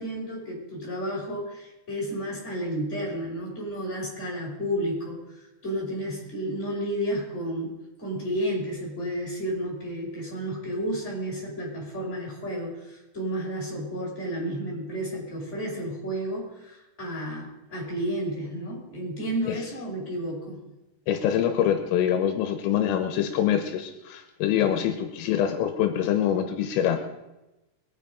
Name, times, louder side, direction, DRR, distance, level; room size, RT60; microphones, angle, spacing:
voice 1, 0.0-20.6 24.6-24.7, equal, 15° left, -4 dB, 5.5 m, -32 dB
voice 2, 21.1-27.0, left 10 dB, 80° left, 6 dB, 3.6 m, -25 dB
22.5 x 9.2 x 5.2 m, 0.98 s
omnidirectional pair, 6.0 m